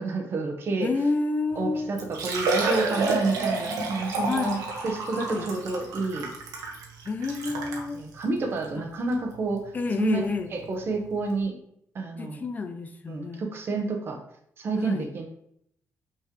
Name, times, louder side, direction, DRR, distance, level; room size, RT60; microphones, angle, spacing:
voice 1, 0.0-0.9 1.5-6.3 7.5-7.6 7.9-11.6 11.9-12.5 13.1-14.2 14.6-15.3, right 3 dB, 40° right, 4 dB, 1.1 m, -29 dB
voice 2, 0.8-1.9 4.3-4.6 5.1-5.4 7.1-8.0 9.7-10.5 12.2-13.4 14.8-15.1, left 3 dB, 30° left, 8 dB, 0.4 m, -29 dB
Liquid, 1.5-1.6 2.0-7.9 8.6-8.7 9.1-9.2 10.9-11.0 11.1-11.2, right 3 dB, 85° right, 1.3 m, -29 dB
5.8 x 5.4 x 3.2 m, 0.70 s
cardioid pair, 155°, 6 cm